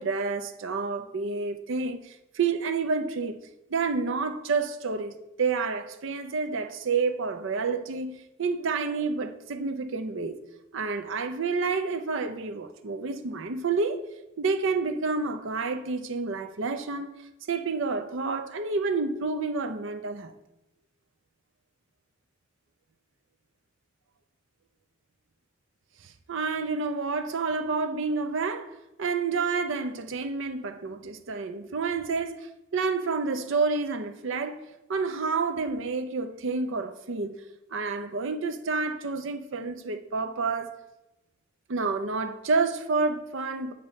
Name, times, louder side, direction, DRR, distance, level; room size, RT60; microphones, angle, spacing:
voice 1, 0.0-3.4 3.7-10.4 10.7-14.0 14.4-17.1 17.5-20.3 26.0-28.7 29.0-34.6 34.9-37.4 37.7-40.8 41.7-43.7, right 4 dB, 65° right, 0.5 m, -29 dB
7.2 x 5.3 x 5.1 m
head